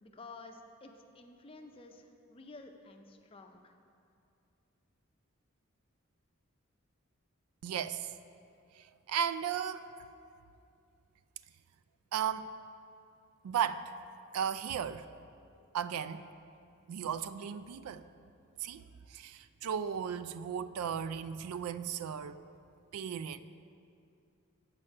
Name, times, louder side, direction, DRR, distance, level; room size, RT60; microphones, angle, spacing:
voice 1, 0.0-3.7, left 3 dB, 25° left, 4 dB, 0.5 m, -52 dB
voice 2, 7.6-8.1 8.8-9.9 12.1-12.5 13.4-13.9 14.3-15.1 15.7-16.3 16.9-18.0 18.6-18.8 19.1-22.4 22.9-23.4, right 8 dB, 90° right, 14 dB, 0.3 m, -35 dB
7.2 x 5.3 x 6.6 m, 2.5 s
head